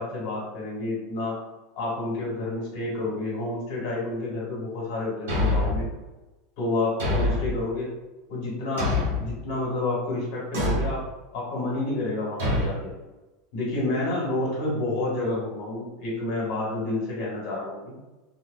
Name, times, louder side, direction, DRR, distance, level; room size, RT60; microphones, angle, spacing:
voice 1, 0.0-1.4 1.8-5.9 6.6-7.9 8.3-11.0 11.3-12.9 13.5-17.9, left 2 dB, 65° left, -5 dB, 1.2 m, -29 dB
Thump thud, 5.3-5.9 7.0-7.6 8.8-9.3 10.5-11.0 12.4-12.7, left 2 dB, 75° right, 1.1 m, -25 dB
2.8 x 2.1 x 2.5 m, 1.1 s
hypercardioid pair, 100°, 0 cm